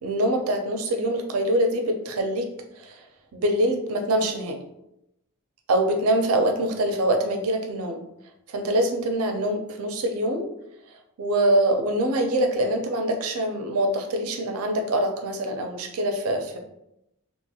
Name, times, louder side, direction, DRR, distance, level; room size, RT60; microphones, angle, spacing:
voice 1, 0.0-2.5 2.8-3.0 3.3-4.6 5.7-8.0 8.5-10.4 11.2-16.6, right 1 dB, 85° right, 5 dB, 0.5 m, -24 dB
2.9 x 2.8 x 2.3 m, 0.83 s
head